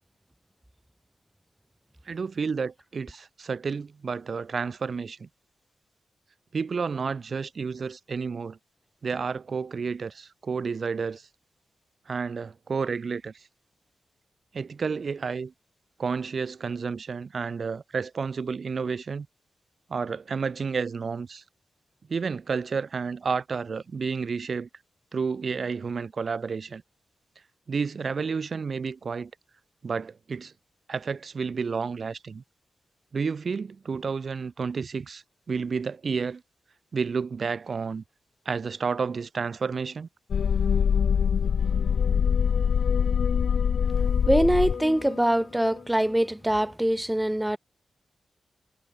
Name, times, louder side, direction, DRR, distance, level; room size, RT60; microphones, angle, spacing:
voice 1, 2.1-5.3 6.5-8.6 9.0-11.3 12.1-13.3 14.5-15.5 16.0-19.3 19.9-21.4 22.1-24.7 25.1-26.8 27.7-29.3 29.8-30.5 30.9-32.4 33.1-36.4 36.9-38.0 38.5-40.1, right 5 dB, 60° right, 1.8 m, -31 dB
sound 1, 40.3-45.3 45.7-45.8, left 7 dB, 80° left, 0.6 m, -24 dB
voice 2, 44.3-47.6, right 1 dB, 10° right, 0.4 m, -23 dB
cardioid pair, 65°, 0 cm